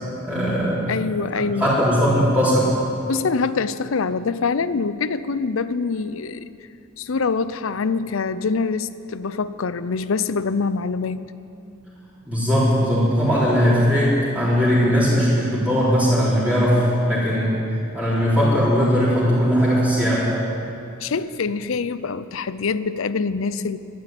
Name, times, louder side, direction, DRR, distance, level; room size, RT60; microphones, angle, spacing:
voice 1, 0.2-0.9 1.6-2.7 12.2-17.5 17.9-20.3, equal, 5° right, -10 dB, 4.3 m, -19 dB
voice 2, 0.9-1.7 3.1-6.4 7.0-11.3 21.0-23.8, left 4 dB, 70° left, 15 dB, 0.6 m, -24 dB
12.5 x 12.0 x 9.0 m, 2.7 s
head